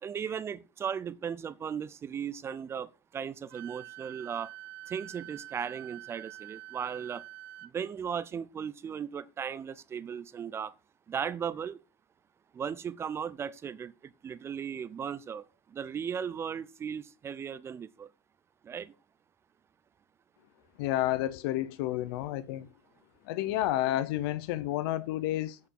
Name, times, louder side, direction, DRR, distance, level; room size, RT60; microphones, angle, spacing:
voice 1, 0.0-4.5 4.9-7.2 7.6-10.7 11.1-11.8 12.5-18.1 18.6-18.9, right 7 dB, 20° right, 0.5 m, -37 dB
Wind instrument woodwind instrument, 3.5-7.7, right 16 dB, 85° right, 0.7 m, -46 dB
voice 2, 20.8-22.7 23.3-25.6, left 14 dB, 80° left, 0.7 m, -30 dB
8.5 x 6.6 x 5.5 m
cardioid pair, 160°, 12 cm